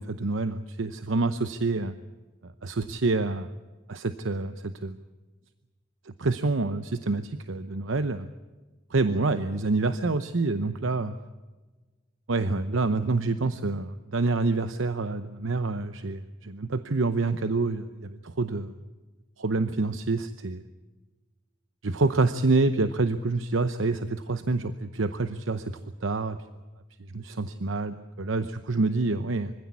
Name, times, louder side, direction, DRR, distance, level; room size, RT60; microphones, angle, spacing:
voice 1, 0.0-2.0 2.4-3.5 3.9-5.0 6.0-8.3 8.9-11.1 12.3-18.7 19.4-20.6 21.8-25.7 26.0-26.4 27.1-29.5, right 3 dB, 75° right, 11 dB, 0.8 m, -27 dB
24.5 x 16.0 x 8.4 m, 1.2 s
head